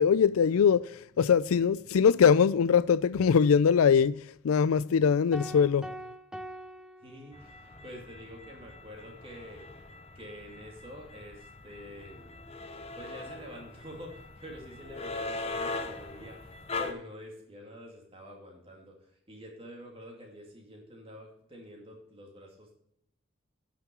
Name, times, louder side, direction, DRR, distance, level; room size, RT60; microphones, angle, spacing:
voice 1, 0.0-5.9, left 7 dB, 90° left, 0.4 m, -22 dB
sound 1, 5.3-7.8, right 1 dB, 5° right, 0.4 m, -43 dB
voice 2, 7.0-9.8 10.1-12.3 12.9-19.0 19.3-22.7, equal, 25° right, 2.3 m, -47 dB
sound 2, 7.3-16.9, left 3 dB, 30° left, 0.8 m, -41 dB
11.5 x 5.9 x 4.4 m
head